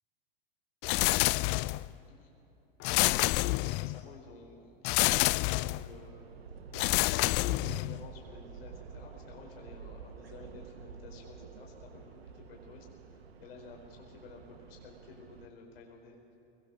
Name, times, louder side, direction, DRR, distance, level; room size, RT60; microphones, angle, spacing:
sound 1, 0.8-1.9 2.8-4.0 4.8-5.9 6.7-8.0, left 22 dB, 40° left, 0.4 m, -28 dB
voice 1, 2.0-2.4 3.3-6.2 7.0-16.4, left 4 dB, 75° left, 0 dB, 4.8 m, -53 dB
sound 2, 5.5-15.5, right 6 dB, 90° right, 1.4 m, -49 dB
21.5 x 21.0 x 6.5 m, 3.0 s
hypercardioid pair, 110°, 30 cm